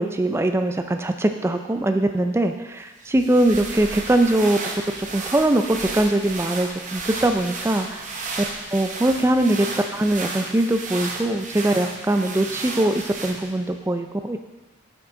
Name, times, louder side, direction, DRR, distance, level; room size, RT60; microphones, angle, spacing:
voice 1, 0.0-4.6 5.1-8.1 8.7-14.4, right 1 dB, 10° right, 6 dB, 0.3 m, -21 dB
sound 1, 3.0-13.7, right 3 dB, 35° right, 0.8 m, -33 dB
8.1 x 6.0 x 3.7 m, 1.3 s
head